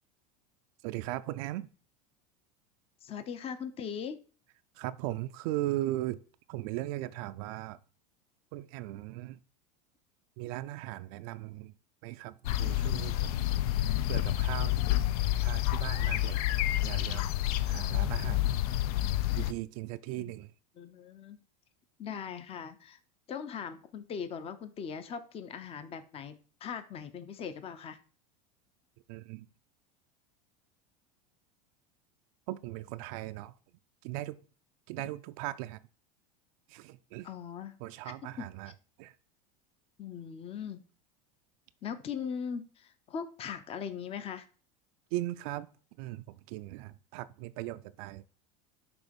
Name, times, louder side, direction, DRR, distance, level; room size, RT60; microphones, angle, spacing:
voice 1, 0.8-1.7 4.8-6.2 6.5-7.8 8.5-9.4 10.4-11.7 12.0-13.4 14.1-14.8 15.4-16.4 16.8-17.3 17.7-18.5 19.4-20.5 29.1-29.5 32.5-33.5 34.0-34.4 34.9-35.8 36.7-37.3 37.8-38.7 39.0-39.1 45.1-45.7 46.0-48.2, right 16 dB, 65° right, 0.4 m, -38 dB
voice 2, 3.0-4.2 20.2-20.3 20.8-21.4 22.0-23.0 23.3-28.0 37.2-37.8 38.0-38.5 40.0-40.8 41.8-44.5, left 7 dB, 30° left, 0.6 m, -40 dB
sound 1, 12.4-19.5, left 14 dB, 75° left, 0.4 m, -29 dB
6.1 x 2.9 x 5.2 m
supercardioid pair, 110°, 19 cm